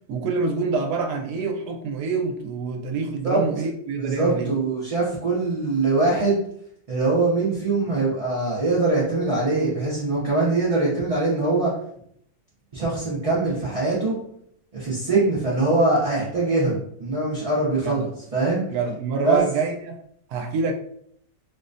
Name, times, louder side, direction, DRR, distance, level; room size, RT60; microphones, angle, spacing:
voice 1, 0.1-4.5 17.8-18.1 18.7-20.0 20.3-20.7, right 4 dB, 90° right, 4 dB, 1.1 m, -26 dB
voice 2, 4.0-6.4 6.9-11.7 12.7-14.2 14.7-18.6 19.2-19.4, right 2 dB, 50° right, -8 dB, 0.4 m, -22 dB
4.2 x 2.1 x 2.5 m, 0.68 s
omnidirectional pair, 1.7 m